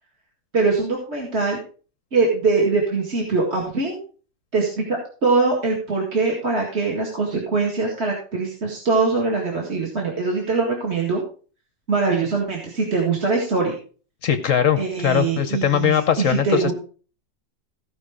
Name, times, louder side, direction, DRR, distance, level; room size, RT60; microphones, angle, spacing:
voice 1, 0.5-1.6 2.1-4.0 4.5-11.2 11.9-13.8 14.8-16.7, right 4 dB, 35° right, -1 dB, 2.1 m, -22 dB
voice 2, 14.2-16.7, left 9 dB, 60° left, 10 dB, 0.9 m, -20 dB
15.5 x 5.4 x 4.9 m, 0.39 s
omnidirectional pair, 2.0 m